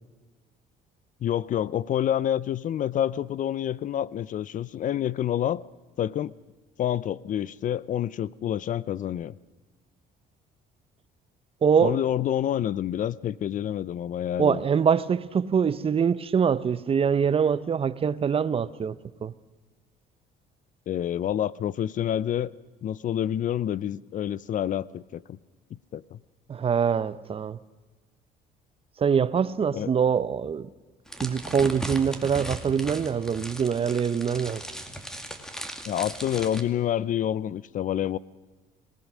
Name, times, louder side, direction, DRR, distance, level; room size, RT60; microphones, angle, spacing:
voice 1, 1.2-5.6 6.0-6.3 6.8-9.3 11.8-14.6 20.9-22.5 22.8-25.4 25.9-26.2 29.7-29.9 35.9-38.2, left 10 dB, 50° left, 0.6 m, -28 dB
voice 2, 11.6-12.0 14.4-19.0 19.2-19.3 26.5-27.6 29.0-30.7 31.2-34.6, right 7 dB, 35° right, 0.8 m, -24 dB
sound 1, 31.1-36.6, right 1 dB, 5° left, 2.2 m, -37 dB
26.0 x 18.5 x 6.3 m
cardioid pair, 110°, 17 cm